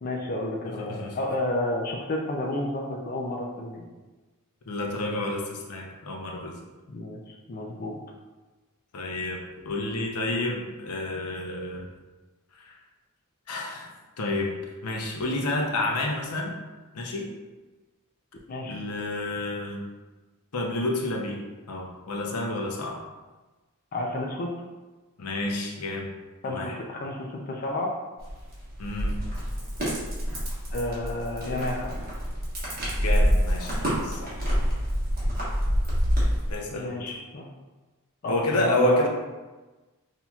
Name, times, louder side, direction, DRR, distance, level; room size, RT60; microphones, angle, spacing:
voice 1, 0.0-3.9 6.9-8.0 18.5-18.8 23.9-24.5 26.4-27.9 30.7-32.0 36.7-37.5 38.2-39.1, left 1 dB, 40° left, -1 dB, 0.4 m, -31 dB
voice 2, 0.7-1.2 4.7-6.6 8.9-11.8 12.6-12.7 13.5-14.5 14.8-16.5 16.9-17.3 18.6-19.9 20.5-21.4 21.7-23.0 25.2-26.1 26.4-26.8 28.8-29.1 33.0-34.3 36.5-37.0 38.3-39.1, left 2 dB, 80° left, 0 dB, 0.7 m, -30 dB
sound 1, 28.2-36.5, equal, 40° right, 1.3 m, -27 dB
5.7 x 2.8 x 2.3 m, 1.2 s
head